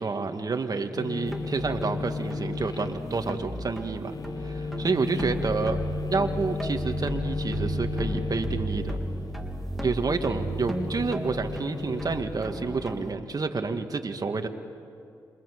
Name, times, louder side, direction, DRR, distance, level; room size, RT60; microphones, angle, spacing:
voice 1, 0.0-4.1 4.4-5.8 6.1-9.0 9.8-14.5, right 4 dB, 45° right, 6 dB, 2.3 m, -29 dB
sound 1, 0.9-12.2, left 4 dB, 50° left, 1.9 m, -35 dB
sound 2, 1.2-13.1, right 1 dB, ahead, 3.5 m, -34 dB
27.5 x 24.5 x 8.5 m, 2.5 s
supercardioid pair, 45°, 9 cm